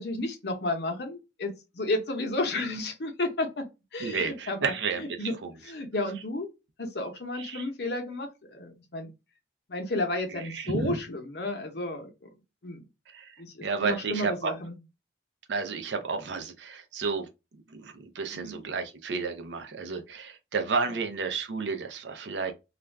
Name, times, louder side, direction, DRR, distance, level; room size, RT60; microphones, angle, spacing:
voice 1, 0.0-3.7 3.9-4.7 5.0-5.3 5.6-6.5 6.8-9.1 9.7-12.1 12.6-12.8 13.4-14.8 18.3-18.6 20.9-21.0, left 2 dB, 60° left, 0.7 m, -32 dB
voice 2, 4.0-5.5 7.4-7.6 10.5-11.0 13.1-13.3 13.6-14.5 15.5-17.3 17.7-22.5, right 4 dB, 75° right, 0.5 m, -31 dB
2.4 x 2.2 x 3.2 m
head